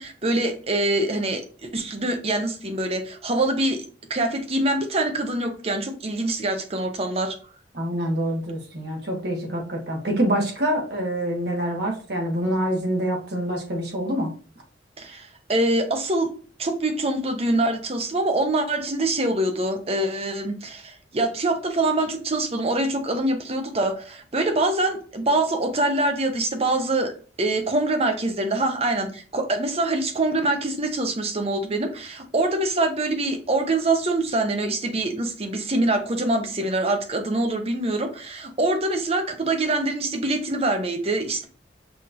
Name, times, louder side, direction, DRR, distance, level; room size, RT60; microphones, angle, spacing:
voice 1, 0.0-3.8 4.1-7.4 15.0-16.3 16.6-27.1 27.4-41.5, right 2 dB, 35° right, 5 dB, 0.8 m, -24 dB
voice 2, 7.7-14.3, right 1 dB, 60° right, 0 dB, 1.4 m, -26 dB
5.7 x 3.0 x 2.6 m, 0.40 s
head